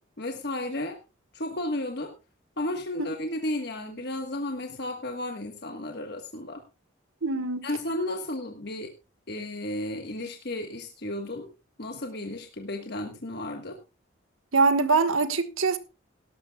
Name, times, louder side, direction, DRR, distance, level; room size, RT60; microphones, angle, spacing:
voice 1, 0.2-1.0 1.3-2.1 2.6-6.6 7.6-8.9 9.3-11.5 11.8-13.8, left 1 dB, 50° left, 1.4 m, -33 dB
voice 2, 7.2-7.6 14.5-15.8, right 4 dB, 90° right, 1.4 m, -23 dB
19.0 x 12.0 x 2.3 m
head